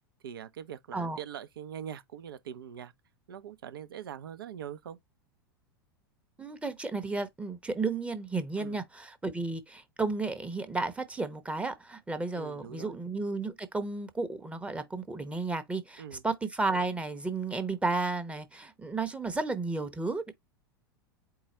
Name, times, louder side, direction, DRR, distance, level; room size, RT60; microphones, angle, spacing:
voice 1, 0.2-2.9 3.3-5.0 8.6-8.8 12.3-13.0 16.0-16.2, right 9 dB, 70° right, 0.6 m, -42 dB
voice 2, 6.4-20.3, right 3 dB, 10° right, 0.8 m, -33 dB
4.7 x 2.3 x 4.2 m
figure-of-eight pair, 85°, 13 cm